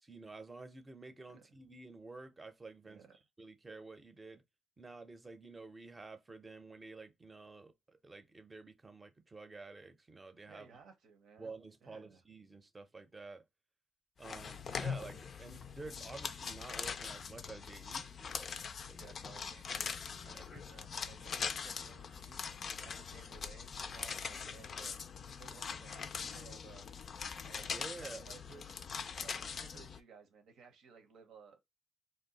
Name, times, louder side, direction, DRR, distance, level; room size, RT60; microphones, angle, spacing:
voice 1, 0.0-3.0 3.4-4.4 4.8-10.7 11.4-13.4 14.2-18.6 18.9-19.2 27.5-28.3, right 3 dB, 20° right, 0.6 m, -50 dB
voice 2, 2.8-3.2 10.5-11.5 11.8-12.2 19.0-20.0 20.2-24.9 25.4-26.8 27.5-28.8 29.2-31.6, right 6 dB, 75° right, 0.9 m, -58 dB
sound 1, 14.2-30.0, left 6 dB, 50° left, 0.3 m, -42 dB
2.6 x 2.2 x 3.9 m
cardioid pair, 90°, 0 cm